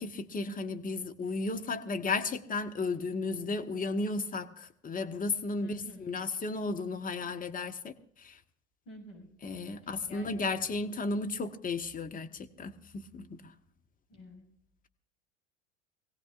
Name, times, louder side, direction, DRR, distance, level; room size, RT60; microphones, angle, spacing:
voice 1, 0.0-8.4 9.4-13.5, left 3 dB, 20° left, 6 dB, 1.3 m, -34 dB
voice 2, 5.6-6.1 8.8-9.3 9.8-10.4 14.1-14.5, left 1 dB, 40° left, 1 dB, 6.7 m, -49 dB
23.5 x 17.0 x 2.5 m, 0.67 s
figure-of-eight pair, 80°, 38 cm